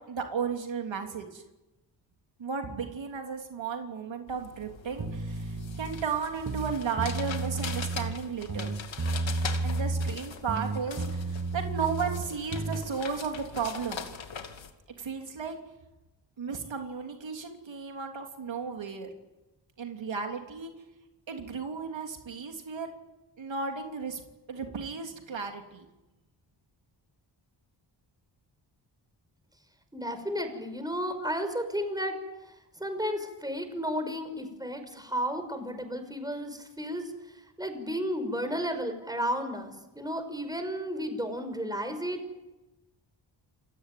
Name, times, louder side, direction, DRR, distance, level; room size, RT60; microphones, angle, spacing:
voice 1, 0.1-1.4 2.4-8.7 9.6-14.1 15.0-15.6 16.4-19.1 19.8-20.7 21.3-22.9 23.4-24.2 24.5-25.8, right 5 dB, 75° right, 3 dB, 3.2 m, -34 dB
sound 1, 4.3-14.7, left 6 dB, 75° left, 2.5 m, -42 dB
sound 2, 5.0-6.0 6.4-8.2 8.5-10.2 10.5-12.9, right 3 dB, 40° right, 2.0 m, -32 dB
voice 2, 29.9-32.2 32.8-42.2, equal, 10° right, 8 dB, 5.8 m, -33 dB
28.5 x 17.0 x 9.3 m, 1.0 s
cardioid pair, 70°, 45 cm